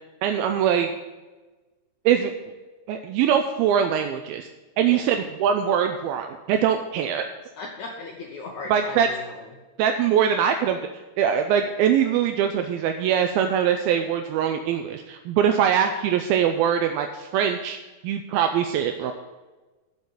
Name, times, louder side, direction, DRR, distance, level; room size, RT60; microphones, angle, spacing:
voice 1, 0.2-0.9 2.1-2.3 2.9-4.5 4.8-7.3 8.7-9.1 9.8-10.8 11.2-17.8 18.0-19.1, right 8 dB, 80° right, 6 dB, 2.2 m, -22 dB
voice 2, 7.6-9.5, left 3 dB, 80° left, 0 dB, 1.7 m, -37 dB
7.5 x 7.3 x 8.4 m, 1.2 s
omnidirectional pair, 4.7 m